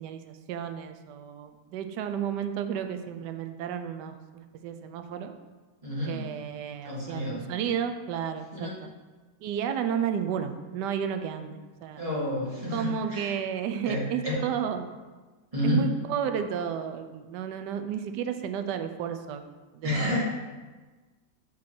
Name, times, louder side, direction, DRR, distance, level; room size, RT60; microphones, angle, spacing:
voice 1, 0.0-5.3 6.1-8.9 9.4-12.0 12.7-14.9 15.6-19.5 19.7-20.1, right 8 dB, 80° right, 8 dB, 1.2 m, -32 dB
voice 2, 5.8-6.1 6.8-7.4 8.5-8.8 12.0-13.3 13.8-14.4 15.5-15.8 19.8-20.2, left 1 dB, 20° right, -7 dB, 2.0 m, -29 dB
5.9 x 4.7 x 6.0 m, 1.3 s
omnidirectional pair, 1.8 m